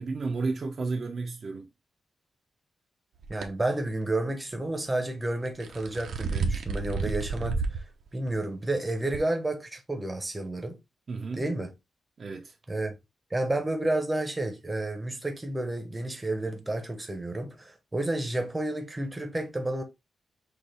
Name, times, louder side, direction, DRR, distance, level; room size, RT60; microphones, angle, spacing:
voice 1, 0.0-1.7 11.1-11.5 12.2-12.6, right 3 dB, 40° right, 0.6 m, -32 dB
sound 1, 3.2-3.5 5.5-7.8 8.3-8.4 9.1-9.2, right 4 dB, 80° right, 0.8 m, -30 dB
voice 2, 3.3-7.8 8.1-10.8 11.4-11.7 12.7-12.9 13.3-19.8, right 2 dB, 15° right, 0.8 m, -31 dB
6.2 x 2.5 x 3.3 m
wide cardioid pair, 175°, 0 cm